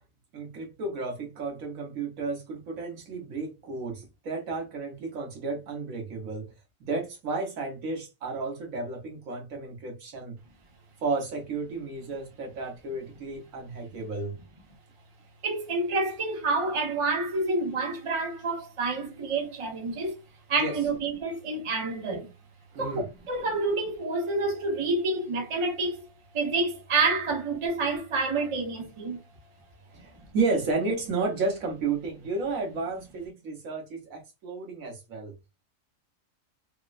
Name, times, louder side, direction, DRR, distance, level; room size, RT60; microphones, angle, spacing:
voice 1, 0.3-6.5 6.8-10.4 11.0-14.4 20.6-20.8 22.7-23.1 29.9-35.3, right 3 dB, 85° right, 1.4 m, -32 dB
voice 2, 15.4-20.2 20.5-22.3 22.8-26.0 26.3-29.2, right 3 dB, 30° right, 0.7 m, -28 dB
3.5 x 2.0 x 2.4 m
omnidirectional pair, 1.4 m